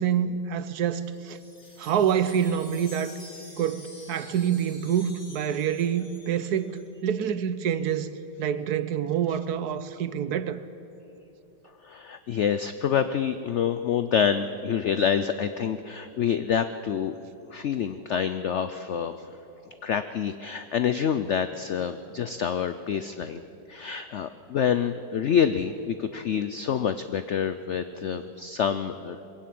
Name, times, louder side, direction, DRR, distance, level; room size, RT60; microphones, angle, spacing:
voice 1, 0.0-1.4 1.8-3.2 3.6-8.1 8.4-10.6, right 8 dB, 70° right, 1.1 m, -27 dB
Wind chime, 0.7-6.9, left 2 dB, 50° left, 3.6 m, -49 dB
voice 2, 11.8-17.1 17.5-19.2 19.8-23.4 23.7-29.2, left 8 dB, 70° left, 0.6 m, -27 dB
21.5 x 16.5 x 7.7 m
omnidirectional pair, 1.9 m